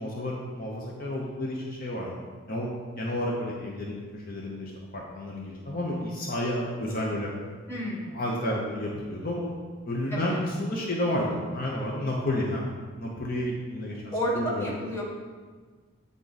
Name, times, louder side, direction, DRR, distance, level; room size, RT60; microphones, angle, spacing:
voice 1, 0.0-2.2 2.5-2.7 3.0-7.3 8.1-9.5 9.9-12.6 13.0-14.6, left 1 dB, 40° left, -3 dB, 0.7 m, -31 dB
voice 2, 7.7-8.2 10.1-10.4 14.1-15.0, equal, 10° left, -6 dB, 1.1 m, -31 dB
8.6 x 3.6 x 4.0 m, 1.5 s
head